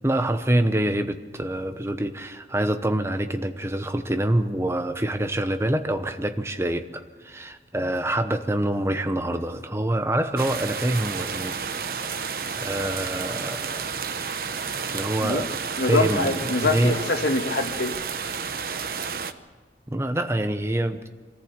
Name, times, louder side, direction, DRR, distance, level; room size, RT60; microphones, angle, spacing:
voice 1, 0.0-11.6 12.5-13.9 14.9-15.5 15.9-16.4 16.7-17.0 19.9-21.1, right 1 dB, 15° right, 8 dB, 1.0 m, -26 dB
sound 1, 10.4-19.3, right 6 dB, 55° right, 0.9 m, -31 dB
voice 2, 15.8-18.0, left 2 dB, 75° left, 5 dB, 1.9 m, -24 dB
23.5 x 14.5 x 8.2 m, 1.5 s
head